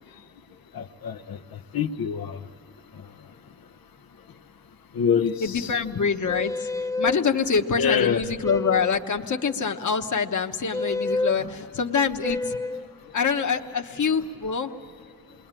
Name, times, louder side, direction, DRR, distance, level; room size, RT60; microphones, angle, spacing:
voice 1, 0.7-2.4 4.9-5.7 7.8-8.2, left 7 dB, 85° left, 6 dB, 0.9 m, -25 dB
voice 2, 5.4-6.7 7.0-12.6 13.1-14.7, left 5 dB, 55° left, 3 dB, 1.2 m, -25 dB
sound 1, 6.3-7.2 8.4-9.0 10.7-11.4 12.2-12.9, left 2 dB, 10° left, 0.7 m, -28 dB
28.5 x 21.5 x 9.0 m, 2.4 s
cardioid pair, 75°, 35 cm